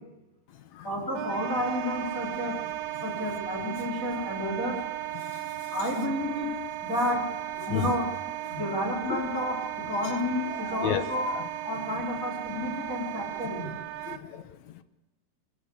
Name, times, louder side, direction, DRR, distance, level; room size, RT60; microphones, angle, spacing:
voice 1, 0.8-2.6 3.0-4.8 5.7-6.5 6.8-7.2 7.7-8.0 8.5-9.6 9.9-11.3 11.6-13.7, left 1 dB, 25° left, 4.6 m, -30 dB
Wind instrument woodwind instrument, 1.1-14.2, right 14 dB, 85° right, 2.6 m, -36 dB
voice 2, 5.1-5.7 7.6-7.9 8.5-8.6 9.1-9.2 10.0-10.2 10.5-11.4 12.9-13.0 14.1-14.8, left 10 dB, 70° left, 2.0 m, -35 dB
23.5 x 15.5 x 8.1 m
omnidirectional pair, 3.9 m